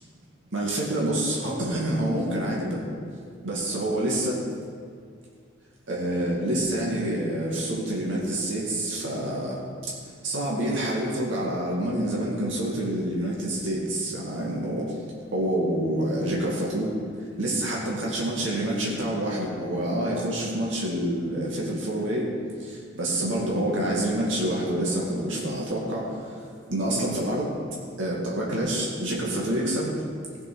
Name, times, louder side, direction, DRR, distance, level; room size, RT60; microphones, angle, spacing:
voice 1, 0.5-2.8 3.4-4.3 5.9-9.9 10.2-15.0 15.3-16.9 17.4-22.3 22.6-26.4 26.7-27.5 28.0-30.0, right 1 dB, 70° right, -4 dB, 2.2 m, -27 dB
16.5 x 6.0 x 6.2 m, 2.2 s
head